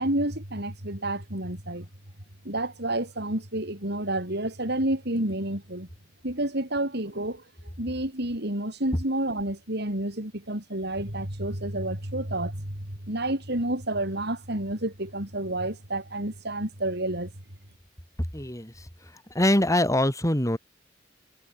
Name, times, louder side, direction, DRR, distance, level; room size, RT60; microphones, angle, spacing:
voice 1, 0.0-1.9 2.4-5.9 6.2-7.4 7.8-17.3, right 1 dB, 60° right, 6.2 m, -30 dB
voice 2, 18.3-18.9 19.3-20.6, left 1 dB, 15° left, 5.6 m, -23 dB
head